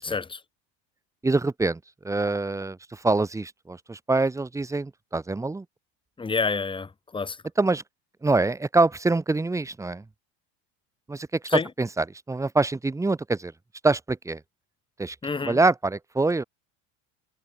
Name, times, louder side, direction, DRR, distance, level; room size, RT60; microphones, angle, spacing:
voice 1, 0.0-0.4 6.2-7.4 11.5-11.7 15.2-15.6, left 4 dB, 15° left, 1.4 m, -28 dB
voice 2, 1.2-5.6 7.6-7.8 8.2-10.0 11.1-13.5 13.8-14.4 15.0-15.2 15.4-16.4, right 3 dB, 10° right, 1.0 m, -25 dB
cardioid pair, 135°, 38 cm